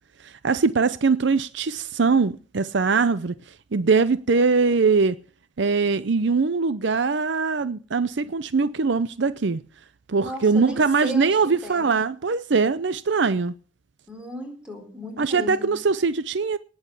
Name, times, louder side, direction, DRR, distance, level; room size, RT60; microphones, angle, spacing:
voice 1, 0.2-5.2 5.6-9.6 10.1-13.5 15.2-16.6, right 4 dB, 60° right, 0.6 m, -22 dB
voice 2, 10.1-11.9 14.1-15.7, equal, 5° right, 4.4 m, -36 dB
19.0 x 8.0 x 6.8 m
head